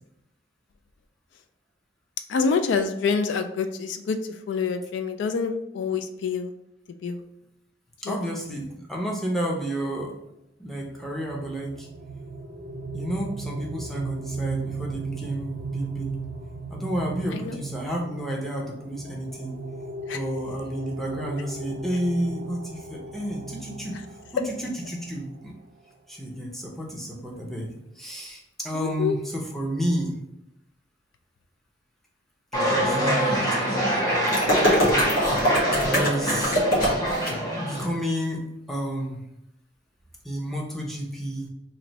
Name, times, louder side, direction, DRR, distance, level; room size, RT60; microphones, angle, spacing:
voice 1, 2.3-4.2 4.5-6.5 7.0-7.2 8.1-8.2 17.3-17.6 20.1-20.2 28.7-29.1, left 5 dB, 70° left, 8 dB, 0.3 m, -26 dB
voice 2, 8.0-10.1 10.6-11.9 12.9-16.1 16.7-19.6 20.1-23.9 24.3-25.5 26.1-27.7 28.0-30.2 32.7-34.3 35.8-36.6 37.5-39.2 40.2-41.5, equal, ahead, -3 dB, 0.6 m, -31 dB
sound 1, 10.8-25.5, right 3 dB, 50° right, 0.3 m, -37 dB
sound 2, 32.5-37.9, equal, 20° left, 1.0 m, -25 dB
sound 3, 34.3-37.3, equal, 50° left, 1.0 m, -22 dB
3.0 x 2.6 x 4.1 m, 0.83 s
head